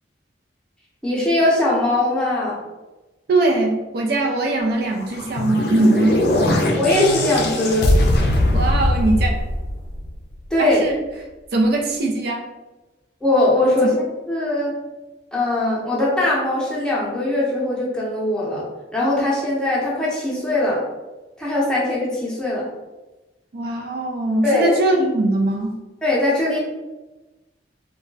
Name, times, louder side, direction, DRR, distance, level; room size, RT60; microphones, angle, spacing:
voice 1, 1.0-2.6 6.8-7.9 10.5-10.8 13.2-14.8 15.3-18.6 18.9-20.8 21.4-22.7 24.4-24.8 26.0-26.6, left 1 dB, 5° left, -7 dB, 0.7 m, -20 dB
voice 2, 3.3-6.2 8.5-9.3 10.6-11.0 11.5-12.4 13.8-13.9 23.5-25.8, right 2 dB, 55° right, 1 dB, 0.4 m, -20 dB
sound 1, 5.0-10.3, left 1 dB, 55° left, 0.4 m, -20 dB
2.3 x 2.1 x 3.7 m, 1.1 s
head